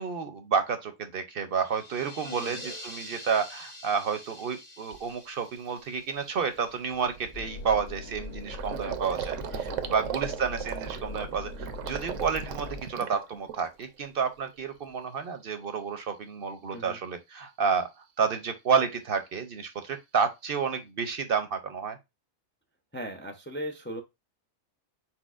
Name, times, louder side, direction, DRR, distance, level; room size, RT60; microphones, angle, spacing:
voice 1, 0.0-17.9 18.2-22.0, right 6 dB, 60° right, 0.7 m, -30 dB
sound 1, 1.5-7.2, left 1 dB, 85° left, 1.9 m, -45 dB
voice 2, 2.2-2.7 8.7-9.9 16.7-17.0 22.9-24.0, equal, 15° left, 0.3 m, -40 dB
Gurgling, 4.3-4.4 4.9-5.2 5.5-5.7 6.0-14.0 14.3-15.0, right 9 dB, 90° right, 1.0 m, -38 dB
sound 2, 7.3-12.8, left 4 dB, 60° left, 1.2 m, -41 dB
4.4 x 4.3 x 2.4 m
omnidirectional pair, 1.3 m